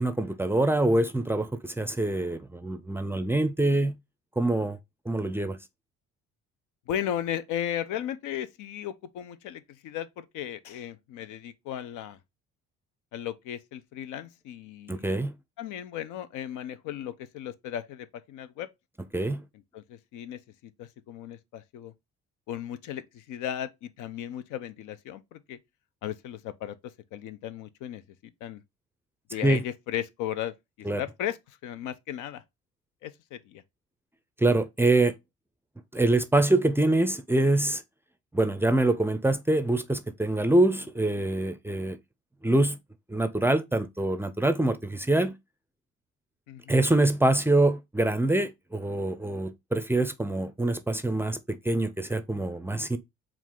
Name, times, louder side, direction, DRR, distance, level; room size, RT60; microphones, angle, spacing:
voice 1, 0.0-4.0 4.4-4.8 5.1-5.6 14.9-15.3 19.1-19.4 29.4-29.6 30.9-31.0 34.4-35.1 35.9-37.8 38.3-42.0 42.4-42.8 43.1-45.4 46.7-53.0, right 2 dB, 10° right, 0.4 m, -25 dB
voice 2, 6.9-12.2 13.1-15.1 15.6-18.7 19.7-20.4 20.8-21.9 22.5-25.6 26.0-28.0 28.4-28.6 29.3-32.4 33.0-33.6 46.5-46.9, left 10 dB, 80° left, 0.6 m, -36 dB
4.6 x 2.4 x 3.6 m
cardioid pair, 95°, 30 cm